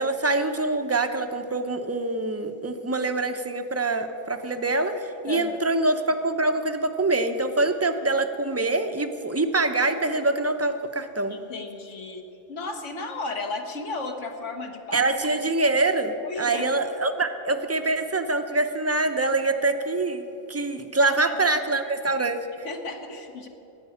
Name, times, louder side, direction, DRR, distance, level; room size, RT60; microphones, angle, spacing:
voice 1, 0.0-11.3 14.9-22.7, right 2 dB, 15° right, 8 dB, 0.6 m, -25 dB
voice 2, 5.3-5.7 11.3-12.2 12.5-15.1 16.2-16.7 21.0-21.4 22.6-23.5, left 3 dB, 70° left, 4 dB, 1.7 m, -34 dB
14.0 x 9.6 x 9.9 m, 2.9 s
omnidirectional pair, 1.3 m